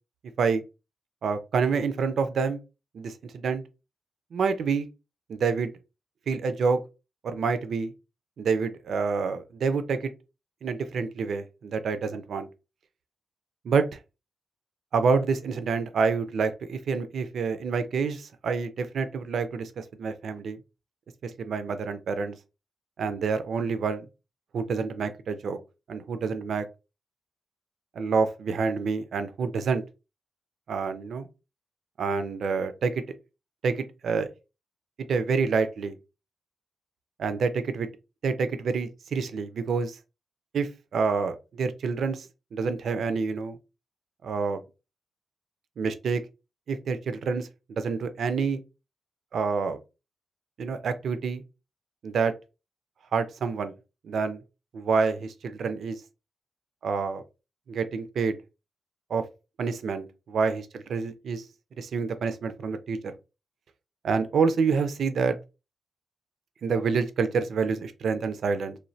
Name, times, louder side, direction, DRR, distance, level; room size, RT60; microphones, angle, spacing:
voice 1, 1.2-2.6 2.9-3.6 4.3-4.9 5.3-5.7 6.3-6.8 7.2-7.9 8.4-10.1 10.6-12.5 13.6-13.8 14.9-20.6 21.2-22.4 23.0-24.1 24.5-25.6 25.9-26.6 28.0-29.8 30.7-31.3 32.0-33.0 33.6-34.3 35.1-36.0 37.2-37.9 38.2-40.0 40.5-43.6 44.2-44.6 45.8-46.2 46.7-48.6 49.3-49.8 50.6-51.4 52.0-52.3 53.1-53.7 54.0-54.4 54.7-56.0 56.8-57.2 57.7-58.4 59.1-59.2 59.6-61.4 61.8-63.1 64.0-65.4 66.6-68.8, right 5 dB, 70° right, 0.4 m, -27 dB
3.1 x 2.2 x 2.6 m
cardioid pair, 85°, 0 cm